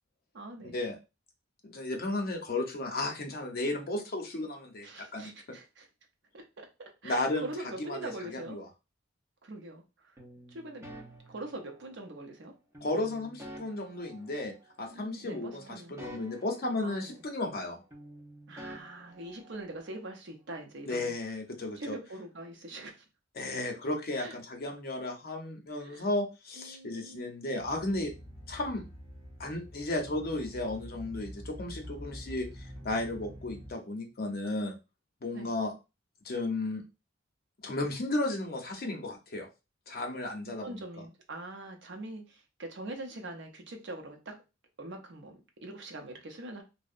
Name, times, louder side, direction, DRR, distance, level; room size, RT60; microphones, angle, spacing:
voice 1, 0.3-0.8 4.8-5.9 6.3-8.6 9.4-10.1 10.5-10.8 11.3-12.5 14.9-16.0 16.8-17.1 18.5-21.1 21.7-23.0 24.2-24.4 25.8-26.1 26.6-27.3 35.3-35.5 40.6-44.4 44.8-46.6, right 2 dB, 65° right, 3 dB, 0.6 m, -43 dB
voice 2, 1.6-5.3 7.0-7.5 7.9-8.6 12.8-14.5 14.8-17.8 20.9-22.0 23.3-28.1 28.5-28.8 29.4-34.7 35.2-35.7 36.2-36.8 37.6-39.5 39.9-40.8, left 2 dB, 50° left, 2 dB, 0.6 m, -34 dB
sound 1, 10.2-12.2 12.7-15.1 15.3-17.6 17.9-20.0, equal, 15° right, 0.6 m, -50 dB
sound 2, 27.6-33.7, equal, 30° right, 1.4 m, -46 dB
2.7 x 2.0 x 2.4 m, 0.28 s
head